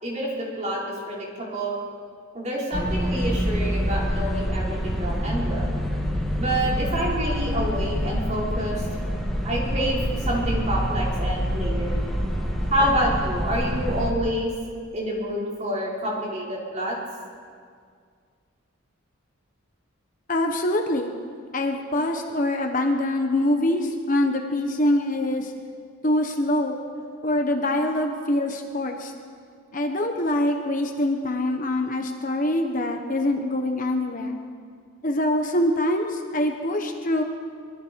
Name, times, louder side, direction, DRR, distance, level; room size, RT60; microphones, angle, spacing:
voice 1, 0.0-1.8 2.3-5.7 6.4-8.8 9.4-12.0 12.7-14.5 14.9-16.9 22.1-22.2 25.7-25.8 27.0-27.1, equal, 30° right, -5 dB, 5.2 m, -27 dB
sound 1, 2.7-14.1, equal, ahead, 2.6 m, -26 dB
voice 2, 20.3-21.1 21.5-25.5 26.0-26.8 27.2-29.1 29.7-34.4 35.0-37.2, left 1 dB, 35° left, 3 dB, 1.3 m, -24 dB
25.0 x 23.0 x 4.8 m, 2.1 s
head